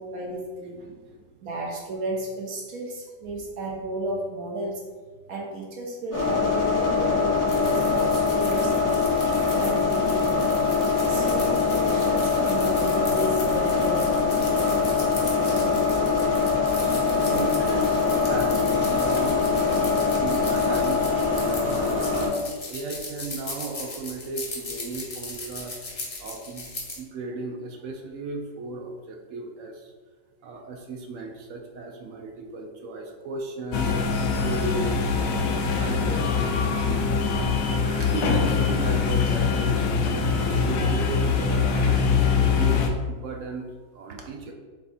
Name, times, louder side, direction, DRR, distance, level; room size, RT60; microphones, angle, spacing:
voice 1, 0.0-0.8 1.4-4.8 5.3-8.7 9.2-10.4 11.0-14.2, right 1 dB, 60° right, -2 dB, 1.2 m, -33 dB
voice 2, 0.8-1.3 17.1-19.4 19.7-25.8 26.2-29.9 30.4-33.9 34.4-35.0 35.7-36.3 36.9-37.0 37.8-43.6 43.9-44.5, right 3 dB, 75° right, 2 dB, 0.7 m, -35 dB
sound 1, 6.1-22.3, left 4 dB, 10° right, 1.2 m, -23 dB
sound 2, 7.5-27.0, left 2 dB, 45° left, 0.4 m, -38 dB
sound 3, 33.7-42.9, left 5 dB, 70° left, 0.8 m, -23 dB
3.5 x 3.4 x 4.0 m, 1.5 s
omnidirectional pair, 1.9 m